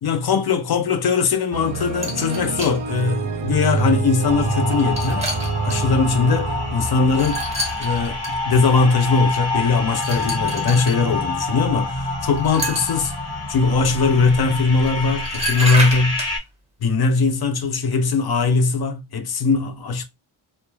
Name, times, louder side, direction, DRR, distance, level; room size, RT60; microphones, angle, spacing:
voice 1, 0.0-5.3 5.6-7.4 7.8-8.2 8.5-13.1 13.5-16.2 16.8-20.0, left 4 dB, 50° left, 0.5 m, -20 dB
sound 1, 1.5-7.7 8.0-8.1, right 5 dB, 40° right, 0.4 m, -27 dB
sound 2, 2.0-2.8 3.7-3.8 4.6-5.8 7.1-8.3 10.0-11.0 12.4-13.1 14.8-14.9 15.2-16.3, equal, 15° right, 0.8 m, -29 dB
sound 3, 4.2-16.4, left 2 dB, 30° left, 1.1 m, -27 dB
2.3 x 2.1 x 3.0 m
wide cardioid pair, 145°, 49 cm